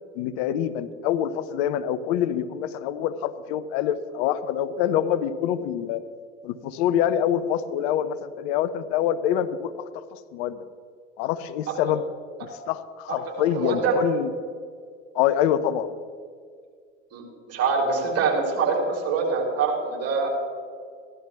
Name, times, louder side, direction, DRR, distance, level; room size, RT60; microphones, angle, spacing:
voice 1, 0.1-6.0 6.4-10.7 11.2-12.0 12.4-14.3 15.1-15.9, left 10 dB, 60° left, 12 dB, 0.8 m, -26 dB
voice 2, 13.5-14.0 17.1-20.3, right 4 dB, 40° right, 0 dB, 3.7 m, -24 dB
16.0 x 12.0 x 3.4 m, 2.1 s
hypercardioid pair, 85°, 37 cm